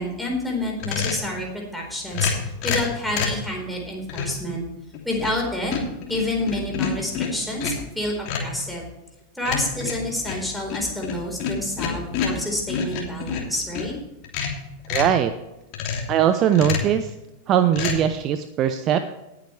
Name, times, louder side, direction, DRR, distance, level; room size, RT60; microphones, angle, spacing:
voice 1, 0.0-4.6 5.0-5.7 6.1-8.9 9.3-13.9, left 1 dB, ahead, -1 dB, 4.4 m, -28 dB
sound 1, 0.8-1.3 2.1-3.4 4.1-4.4 4.9-5.4 5.7-7.9 8.3-8.6 9.4-13.9 14.2-15.2 15.7-16.1 16.5-17.0 17.7-18.0, left 6 dB, 40° left, 2.9 m, -28 dB
voice 2, 14.9-15.3 16.1-17.1 17.5-19.1, right 9 dB, 35° right, 10 dB, 0.7 m, -20 dB
18.5 x 8.7 x 3.4 m, 0.97 s
figure-of-eight pair, 90°, 0 cm